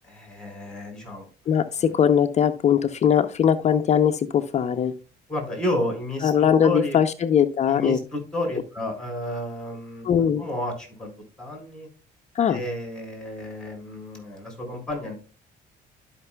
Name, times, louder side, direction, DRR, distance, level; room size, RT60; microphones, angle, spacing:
voice 1, 0.0-1.3 5.3-6.3 6.6-7.0 7.7-10.1 10.4-11.1 11.4-11.9 12.5-15.1, left 1 dB, 5° left, 4.3 m, -31 dB
voice 2, 1.5-4.9 6.2-8.0 10.0-10.4 12.3-12.6, left 8 dB, 40° left, 0.6 m, -20 dB
12.0 x 5.8 x 2.2 m
cardioid pair, 110°, 17 cm